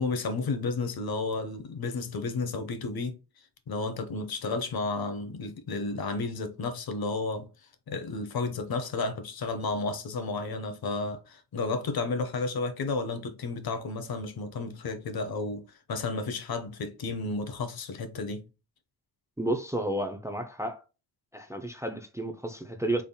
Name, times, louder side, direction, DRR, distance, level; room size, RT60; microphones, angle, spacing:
voice 1, 0.0-3.1 3.7-7.5 7.9-15.6 15.9-18.5, left 3 dB, 65° left, 0.8 m, -32 dB
voice 2, 19.4-20.8 21.3-23.0, right 1 dB, 5° right, 0.5 m, -31 dB
3.8 x 3.6 x 2.2 m
wide cardioid pair, 105°, 40 cm